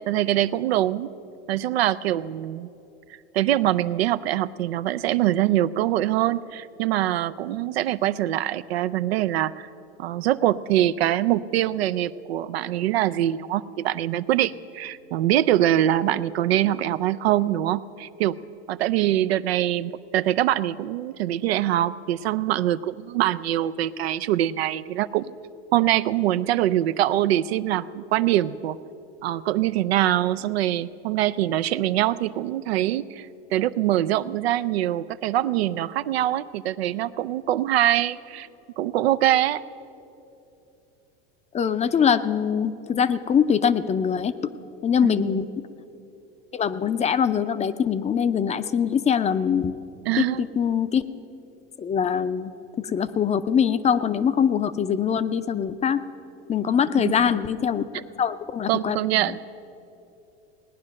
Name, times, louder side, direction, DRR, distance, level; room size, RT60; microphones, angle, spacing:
voice 1, 0.1-1.1 1.5-2.7 3.3-9.7 10.0-18.4 18.7-25.3 25.7-28.8 29.2-38.5 38.8-39.6 45.0-45.3 50.0-50.5 57.0-57.4 57.9-58.0 58.7-59.4, right 13 dB, 90° right, 14 dB, 0.5 m, -24 dB
voice 2, 41.5-44.3 44.8-45.5 46.5-49.7 50.2-51.0 51.8-52.5 52.9-56.0 56.5-57.8 58.2-59.0, left 7 dB, 20° left, 13 dB, 0.5 m, -23 dB
18.0 x 9.8 x 6.4 m, 2.9 s
hypercardioid pair, 100°, 31 cm